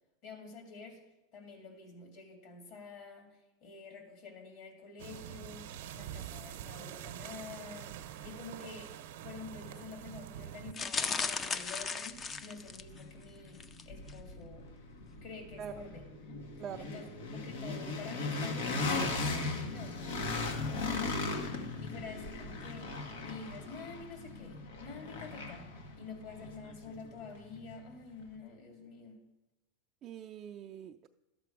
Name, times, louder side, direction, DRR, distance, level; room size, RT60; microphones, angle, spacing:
voice 1, 0.2-1.0 1.3-5.6 5.9-14.7 15.2-16.5 16.8-29.2, left 4 dB, 55° left, 2 dB, 2.9 m, -48 dB
sound 1, 5.0-10.7, right 10 dB, 70° right, 0.7 m, -45 dB
sound 2, 10.7-13.0 13.5-13.8 14.1-14.2, left 5 dB, 25° left, 0.5 m, -36 dB
sound 3, 11.2-11.3 11.8-27.7, left 3 dB, 85° left, 1.4 m, -38 dB
voice 2, 30.0-31.1, right 9 dB, 35° right, 4 dB, 0.4 m, -44 dB
12.0 x 6.8 x 4.8 m, 1.0 s
supercardioid pair, 130°, 0 cm